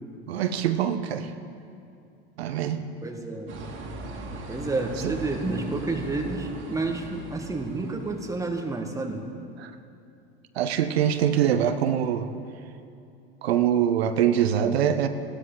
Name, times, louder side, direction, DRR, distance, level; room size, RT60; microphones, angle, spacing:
voice 1, 0.3-1.3 2.4-2.8 5.0-5.1 9.6-9.7 10.6-12.3 13.4-15.1, right 9 dB, 85° right, 9 dB, 0.8 m, -23 dB
voice 2, 3.0-3.5 4.5-9.2, right 3 dB, 10° right, 3 dB, 1.5 m, -30 dB
sound 1, 3.5-8.6, right 2 dB, 40° right, 2.4 m, -39 dB
16.0 x 12.5 x 3.9 m, 2.6 s
hypercardioid pair, 95°, 31 cm